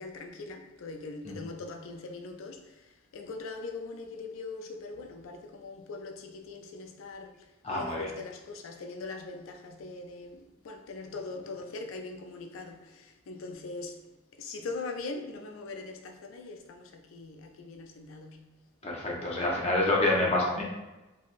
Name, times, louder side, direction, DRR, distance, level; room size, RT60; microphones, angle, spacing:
voice 1, 0.0-7.3 7.7-14.0 14.4-18.4, left 3 dB, 75° left, 0.4 m, -41 dB
voice 2, 7.6-8.1 18.8-20.6, left 2 dB, 30° left, 0.7 m, -27 dB
2.9 x 2.6 x 2.5 m
head